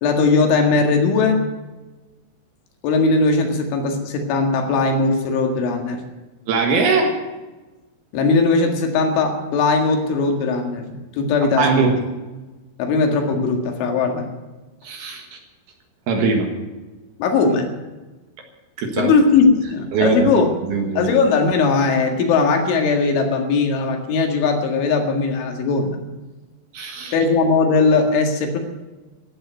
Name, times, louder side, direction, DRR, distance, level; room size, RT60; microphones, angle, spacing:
voice 1, 0.0-1.5 2.8-6.0 8.1-12.0 12.8-14.3 17.2-17.7 19.0-20.5 21.0-26.0 27.1-28.6, left 4 dB, 75° left, 3 dB, 4.3 m, -19 dB
voice 2, 6.5-7.1 11.6-12.0 14.8-15.3 16.1-16.5 18.8-19.1 19.9-20.4 20.7-21.1 26.7-27.1, right 4 dB, 65° right, 3 dB, 3.1 m, -20 dB
15.5 x 9.5 x 9.2 m, 1.2 s
omnidirectional pair, 5.6 m